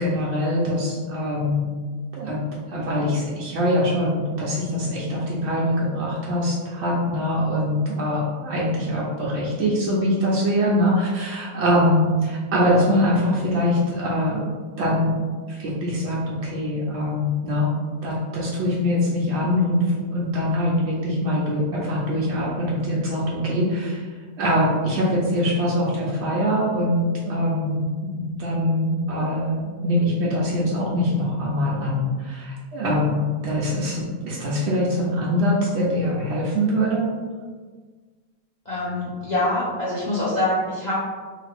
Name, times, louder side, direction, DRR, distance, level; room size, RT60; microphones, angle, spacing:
voice 1, 0.0-1.7 2.1-2.4 2.7-14.5 14.8-15.1 15.5-17.7 18.0-19.8 20.1-24.1 24.4-27.8 28.1-37.1, left 1 dB, 65° right, -6 dB, 0.7 m, -23 dB
voice 2, 38.7-41.0, left 1 dB, 50° left, -9 dB, 0.5 m, -24 dB
2.8 x 2.5 x 3.3 m, 1.5 s
omnidirectional pair, 1.7 m